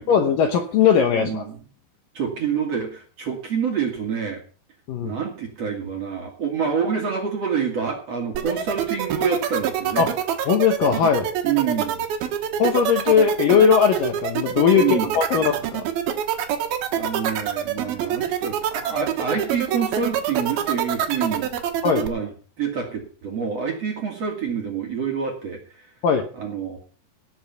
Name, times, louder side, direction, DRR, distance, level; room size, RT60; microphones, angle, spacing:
voice 1, 0.1-1.4 4.9-5.1 10.0-10.2 10.4-11.3 12.6-15.8 21.8-22.0 26.0-26.3, left 7 dB, 70° left, 5 dB, 2.3 m, -19 dB
voice 2, 1.1-1.6 2.1-4.4 5.0-10.1 11.4-12.0 13.1-13.2 14.8-15.1 16.9-21.5 22.0-22.3 22.6-25.9 26.3-26.8, right 6 dB, 45° right, 1 dB, 2.3 m, -27 dB
sound 1, 8.4-22.1, right 9 dB, 65° right, 2.9 m, -25 dB
18.0 x 6.4 x 5.9 m, 0.42 s
omnidirectional pair, 5.2 m